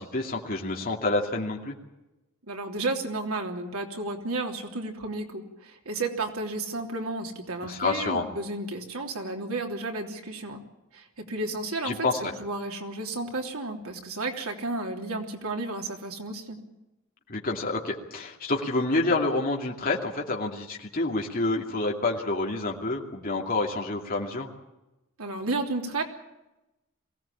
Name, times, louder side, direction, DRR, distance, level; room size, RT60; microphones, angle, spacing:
voice 1, 0.0-1.8 7.6-8.2 11.8-12.3 17.3-24.5, left 2 dB, 45° left, 0 dB, 2.6 m, -28 dB
voice 2, 2.5-10.6 10.9-12.0 12.4-16.6 25.2-26.0, right 2 dB, 85° right, 2 dB, 3.3 m, -32 dB
23.0 x 17.0 x 8.6 m, 0.98 s
head